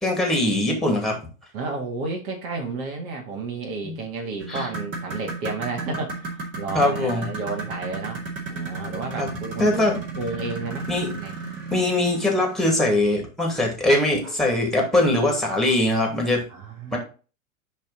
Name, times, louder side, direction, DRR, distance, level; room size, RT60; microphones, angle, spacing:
voice 1, 0.0-1.2 3.8-3.9 4.5-4.7 6.7-7.3 9.2-9.3 9.6-10.0 10.9-11.1 11.7-16.4 16.9-17.0, left 1 dB, ahead, 0 dB, 2.4 m, -21 dB
voice 2, 1.5-8.2 8.5-9.9 10.2-11.3 16.5-17.0, right 3 dB, 45° right, 2 dB, 1.6 m, -32 dB
sound 1, 4.4-12.8 14.2-14.4 14.8-14.9 15.6-15.7, right 3 dB, 30° right, 2.3 m, -34 dB
10.0 x 3.5 x 4.1 m, 0.35 s
figure-of-eight pair, 95°, 41 cm